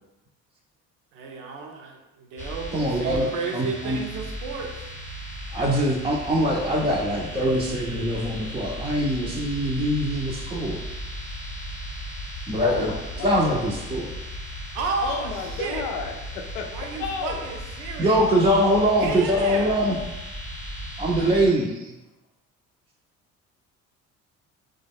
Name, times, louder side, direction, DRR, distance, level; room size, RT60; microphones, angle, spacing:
voice 1, 1.1-4.9 14.7-15.9 16.7-18.2 19.0-19.7 21.6-21.9, right 4 dB, 70° right, 2 dB, 0.7 m, -33 dB
sound 1, 2.4-21.5, equal, 20° left, 0.8 m, -36 dB
voice 2, 2.7-3.3 3.5-4.0 5.5-10.8 12.5-12.9 13.2-14.1 18.0-20.0 21.0-21.7, equal, 15° right, -3 dB, 0.5 m, -23 dB
voice 3, 12.6-13.4 15.0-17.5, left 5 dB, 80° left, 4 dB, 0.5 m, -32 dB
3.5 x 2.2 x 3.4 m, 1.0 s
hypercardioid pair, 50°, 40 cm